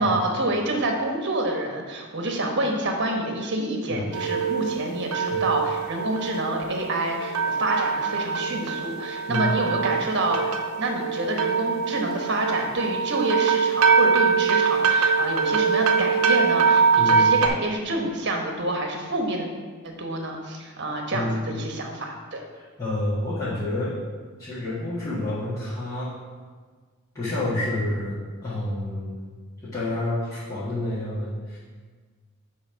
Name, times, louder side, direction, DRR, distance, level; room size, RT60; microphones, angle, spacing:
voice 1, 0.0-10.5 10.8-19.5 19.8-22.4, right 1 dB, 55° right, 2 dB, 1.2 m, -27 dB
sound 1, 4.1-17.5, right 5 dB, 90° right, 0.7 m, -23 dB
voice 2, 21.1-21.4 22.5-23.9 24.4-26.1 27.1-29.3 29.6-31.6, left 1 dB, 15° left, -13 dB, 1.8 m, -29 dB
9.7 x 3.4 x 5.7 m, 1.5 s
head